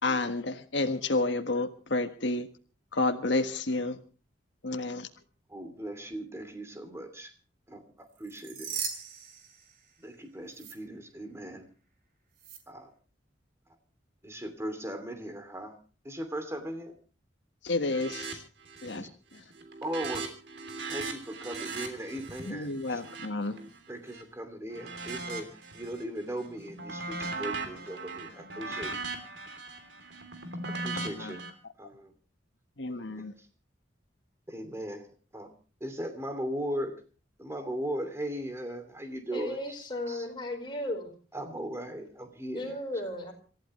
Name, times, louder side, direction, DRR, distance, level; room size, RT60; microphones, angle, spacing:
voice 1, 0.0-2.5 2.9-4.0 4.6-5.1 17.6-18.4 18.8-19.1 22.5-23.6 31.2-31.3 32.8-33.3, left 2 dB, 70° left, 8 dB, 1.5 m, -30 dB
voice 2, 5.5-7.3 7.7-8.7 10.0-11.7 12.7-12.9 14.2-15.8 16.0-17.0 19.0-19.1 19.8-20.3 20.9-23.0 23.9-28.9 30.7-32.1 33.1-33.5 34.5-35.1 35.3-35.5 35.8-36.9 37.4-39.8 40.1-40.3 41.3-42.8, right 1 dB, 15° right, 7 dB, 2.7 m, -38 dB
sound 1, 8.2-10.2 10.5-10.7 12.4-12.6, right 7 dB, 55° right, 3.6 m, -39 dB
sound 2, 17.9-18.4 18.6-19.1 19.4-24.2 24.7-26.0 26.4-31.5, right 3 dB, 70° right, 3.3 m, -39 dB
voice 3, 39.3-41.1 42.5-43.3, left 1 dB, 25° left, 2 dB, 4.6 m, -35 dB
27.5 x 14.5 x 3.2 m, 0.37 s
head